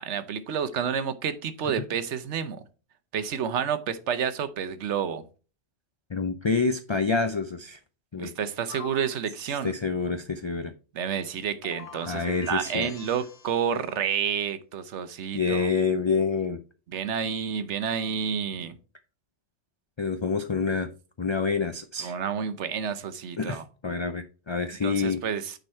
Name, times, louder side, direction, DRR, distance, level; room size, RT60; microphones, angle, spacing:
voice 1, 0.0-2.6 3.1-5.2 8.2-9.7 10.9-15.7 16.9-18.8 22.0-23.6 24.8-25.5, right 7 dB, 80° right, 1.1 m, -30 dB
voice 2, 6.1-7.8 8.1-8.3 9.6-10.7 12.1-12.9 15.3-16.6 20.0-20.9 21.2-22.2 23.4-25.2, left 5 dB, 40° left, 0.4 m, -27 dB
sound 1, 8.7-9.2 11.6-13.8, left 6 dB, 60° left, 1.1 m, -44 dB
9.1 x 4.0 x 4.2 m
omnidirectional pair, 1.2 m